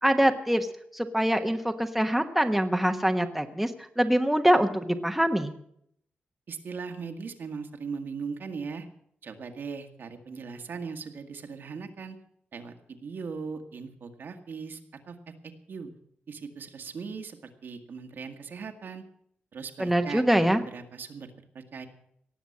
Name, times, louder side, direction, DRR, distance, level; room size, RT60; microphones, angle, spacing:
voice 1, 0.0-0.7 0.9-5.5 19.8-20.6, equal, 5° right, 5 dB, 1.2 m, -24 dB
voice 2, 6.5-8.9 9.2-12.2 12.5-14.8 15.1-15.9 16.3-19.0 19.5-21.3 21.5-21.9, right 5 dB, 65° right, 5 dB, 1.7 m, -39 dB
18.0 x 7.3 x 8.5 m, 0.70 s
wide cardioid pair, 100°, 4 cm